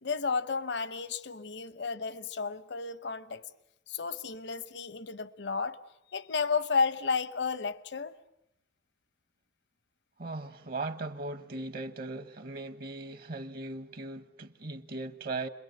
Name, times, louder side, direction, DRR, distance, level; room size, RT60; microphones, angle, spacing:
voice 1, 0.0-3.4 3.9-5.8 6.1-8.2, left 5 dB, 75° left, 0.9 m, -32 dB
voice 2, 10.2-15.5, right 2 dB, 55° right, 1.1 m, -38 dB
30.0 x 22.0 x 7.9 m
head